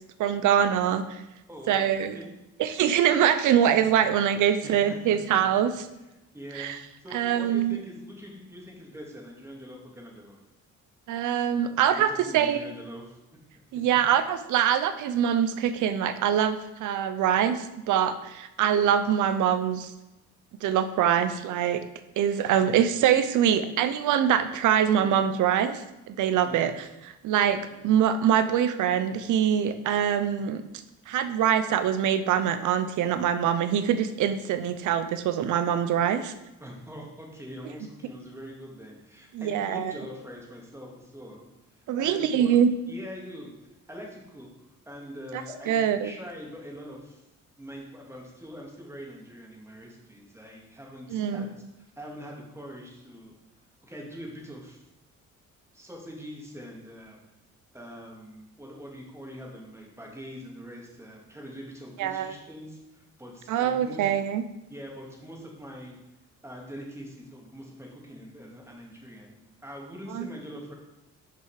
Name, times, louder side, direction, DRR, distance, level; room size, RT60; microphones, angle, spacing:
voice 1, 0.2-1.2 1.7-2.2 2.6-5.7 6.6-6.8 7.1-7.8 11.1-12.6 13.7-19.9 20.6-21.8 22.2-26.7 27.2-30.6 31.1-36.3 39.3-39.9 41.9-42.7 45.3-46.1 51.1-51.5 62.0-62.3 63.5-64.4 70.1-70.3, right 9 dB, 80° right, 11 dB, 0.7 m, -24 dB
voice 2, 1.5-1.9 2.1-2.3 3.8-3.9 4.6-5.2 6.3-6.7 7.0-10.4 12.0-13.2 22.6-22.9 25.0-25.1 26.4-26.7 27.7-27.8 36.6-41.4 42.0-42.6 42.9-44.5 44.9-47.2 47.6-51.5 51.8-53.3 53.8-54.8 55.7-57.2 57.7-64.1 64.7-66.0 66.4-70.7, equal, 10° right, -2 dB, 2.1 m, -43 dB
6.1 x 5.6 x 4.9 m, 0.95 s
cardioid pair, 90°, 30 cm